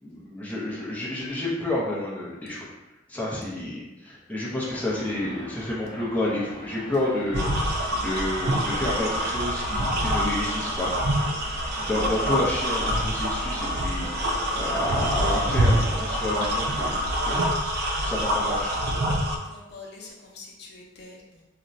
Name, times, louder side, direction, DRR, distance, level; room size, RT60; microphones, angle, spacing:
voice 1, 0.0-2.7 3.1-10.9 11.8-17.0 17.3-17.4 18.0-18.8, left 1 dB, 10° left, -6 dB, 0.5 m, -30 dB
sound 1, 4.6-17.1, equal, 30° left, 1.1 m, -43 dB
sound 2, 7.3-19.4, equal, 55° right, 0.4 m, -26 dB
voice 2, 19.2-21.5, left 3 dB, 60° left, -2 dB, 0.5 m, -45 dB
2.5 x 2.1 x 3.9 m, 1.0 s
head